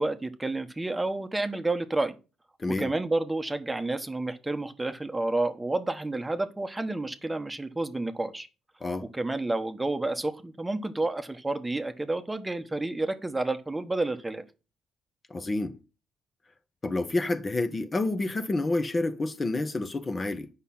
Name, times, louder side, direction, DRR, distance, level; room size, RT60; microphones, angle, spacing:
voice 1, 0.0-2.2 2.8-8.5 9.1-14.4, right 2 dB, 15° right, 1.0 m, -30 dB
voice 2, 2.6-2.9 8.8-9.1 15.3-15.8 16.8-20.5, left 2 dB, 30° left, 0.9 m, -29 dB
8.2 x 5.7 x 5.8 m
cardioid pair, 90°, 0 cm